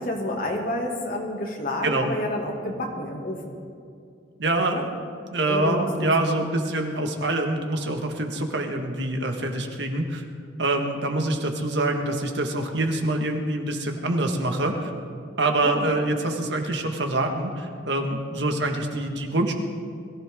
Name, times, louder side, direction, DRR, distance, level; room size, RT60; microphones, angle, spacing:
voice 1, 0.0-3.5 4.7-4.8 5.5-6.1 15.6-15.8, left 1 dB, 50° left, 0 dB, 2.3 m, -29 dB
voice 2, 4.4-4.8 5.3-10.2 10.6-14.9 15.4-19.5, right 2 dB, 70° right, 3 dB, 1.6 m, -25 dB
21.5 x 15.0 x 3.7 m, 2.3 s
head